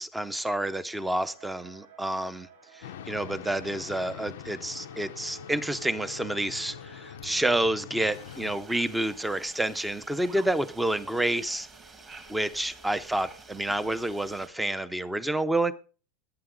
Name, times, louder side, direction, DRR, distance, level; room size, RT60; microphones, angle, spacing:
voice 1, 0.0-2.5 2.7-11.7 12.3-15.7, right 1 dB, 5° right, 15 dB, 0.6 m, -29 dB
sound 1, 0.9-15.2, right 3 dB, 75° right, 2.3 m, -54 dB
sound 2, 2.8-8.6, left 12 dB, 90° left, 0.5 m, -44 dB
sound 3, 8.1-14.5, right 4 dB, 20° right, 1.5 m, -49 dB
17.0 x 8.8 x 3.9 m, 0.38 s
supercardioid pair, 170°, 0 cm